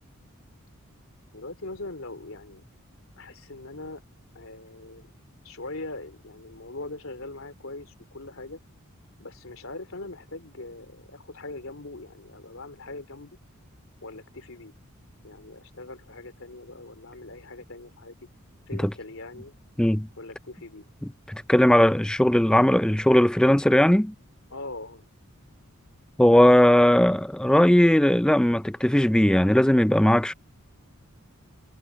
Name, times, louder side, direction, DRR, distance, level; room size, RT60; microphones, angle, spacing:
voice 1, 1.3-2.6 3.2-4.0 4.4-5.1 5.4-8.6 9.2-13.4 14.0-14.7 15.2-18.1 18.7-19.5 20.2-20.9 24.5-25.0, left 2 dB, 70° left, 3.4 m, -41 dB
voice 2, 21.3-24.1 26.2-30.3, left 1 dB, 5° left, 0.3 m, -18 dB
head